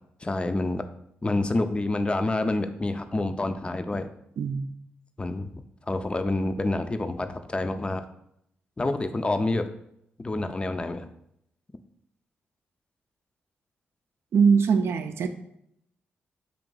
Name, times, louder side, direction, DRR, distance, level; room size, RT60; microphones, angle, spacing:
voice 1, 0.2-0.8 1.2-4.1 5.2-5.5 5.9-8.0 8.8-9.7 10.2-11.1, left 2 dB, 25° left, 9 dB, 0.4 m, -27 dB
voice 2, 4.4-4.7 14.3-15.3, right 6 dB, 75° right, 9 dB, 0.4 m, -22 dB
3.5 x 2.8 x 3.9 m, 0.76 s
cardioid pair, 55°, 4 cm